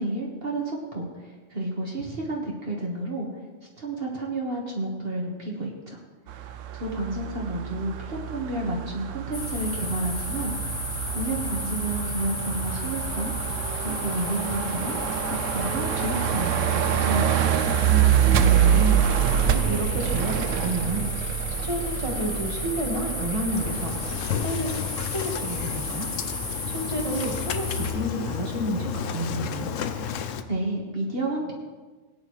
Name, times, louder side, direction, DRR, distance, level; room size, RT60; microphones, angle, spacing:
voice 1, 0.0-3.3 3.8-6.0 6.7-10.5 11.1-13.3 13.7-17.5 30.5-31.5, right 2 dB, 50° right, -2 dB, 1.8 m, -31 dB
sound 1, 6.3-24.2, right 9 dB, 85° right, 1.0 m, -26 dB
sound 2, 9.3-27.9, left 2 dB, 50° left, 2.3 m, -33 dB
voice 2, 18.4-19.0 19.4-26.1 26.7-29.7, right 1 dB, 25° right, -1 dB, 1.7 m, -30 dB
Engine starting, 23.5-30.4, left 7 dB, 90° left, 1.0 m, -32 dB
17.5 x 9.6 x 3.2 m, 1.3 s
omnidirectional pair, 1.3 m